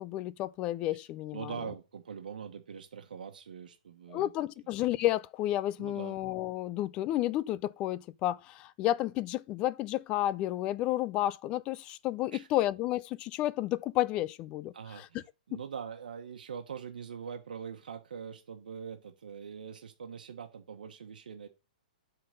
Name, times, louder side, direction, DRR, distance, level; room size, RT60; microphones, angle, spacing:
voice 1, 0.0-1.5 4.1-15.1, left 14 dB, 20° left, 0.3 m, -31 dB
voice 2, 1.3-4.3 5.8-6.2 12.3-12.5 14.7-21.5, right 7 dB, 80° right, 1.3 m, -43 dB
8.1 x 3.9 x 6.6 m
hypercardioid pair, 165°, 5 cm